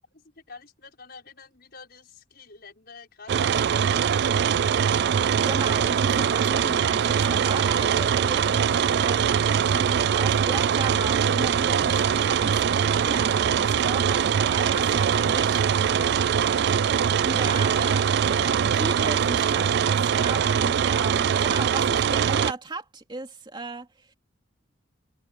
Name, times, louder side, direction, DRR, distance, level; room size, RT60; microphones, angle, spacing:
voice 1, 0.2-5.0 12.0-12.1 13.7-14.2 16.0-16.8 20.2-20.3, left 4 dB, 50° left, 5.6 m, -48 dB
sound 1, 3.3-22.5, right 7 dB, 55° right, 0.3 m, -22 dB
voice 2, 5.4-16.0 17.2-23.9, right 2 dB, 25° right, 2.7 m, -36 dB
head